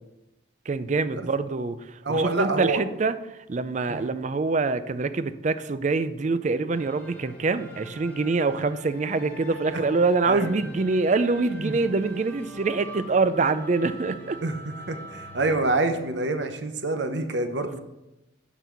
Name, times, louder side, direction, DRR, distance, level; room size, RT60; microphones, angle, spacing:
voice 1, 0.7-14.4 17.6-17.8, right 3 dB, 35° right, 13 dB, 0.4 m, -25 dB
voice 2, 2.0-2.8 3.9-4.2 9.7-9.8 10.3-10.5 11.6-11.8 14.4-17.8, right 2 dB, 60° right, 7 dB, 0.8 m, -27 dB
sound 1, 6.7-15.6, equal, 10° left, 1.3 m, -44 dB
10.5 x 4.1 x 6.7 m, 0.95 s
head